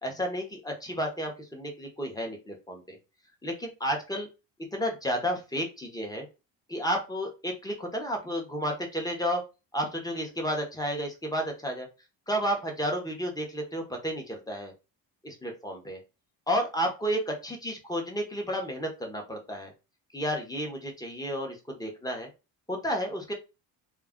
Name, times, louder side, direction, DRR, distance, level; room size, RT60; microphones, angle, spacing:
voice 1, 0.0-3.0 3.4-4.3 4.7-6.3 6.7-9.4 9.7-11.9 12.3-14.7 15.2-16.0 16.5-19.7 20.1-22.3 22.7-23.3, equal, 10° left, 2 dB, 0.6 m, -32 dB
2.3 x 2.0 x 3.5 m, 0.28 s
cardioid pair, 120°, 42 cm